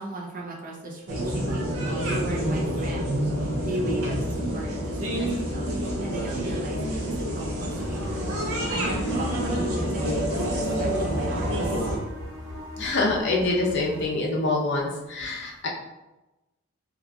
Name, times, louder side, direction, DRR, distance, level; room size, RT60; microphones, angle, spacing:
voice 1, 0.0-3.1 3.4-8.3 8.7-11.8, right 1 dB, 40° right, -1 dB, 0.6 m, -37 dB
sound 1, 1.1-12.0, equal, 80° right, 0.7 m, -27 dB
sound 2, 7.7-14.0, equal, 15° right, 1.2 m, -39 dB
voice 2, 12.8-15.7, left 2 dB, 55° left, -1 dB, 0.6 m, -25 dB
2.9 x 2.4 x 3.6 m, 1.0 s
head